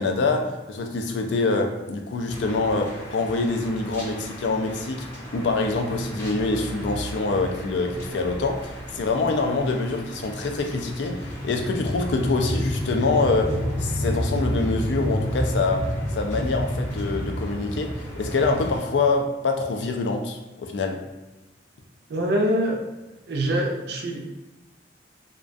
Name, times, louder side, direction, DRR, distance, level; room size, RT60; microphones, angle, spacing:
voice 1, 0.0-5.1 5.3-15.9 16.1-21.0, left 3 dB, 70° left, 4 dB, 0.4 m, -25 dB
sound 1, 2.3-18.8, equal, 15° left, 0.6 m, -31 dB
voice 2, 22.1-22.8 23.3-24.3, equal, 60° right, 1 dB, 0.4 m, -24 dB
2.3 x 2.2 x 2.5 m, 1.1 s
head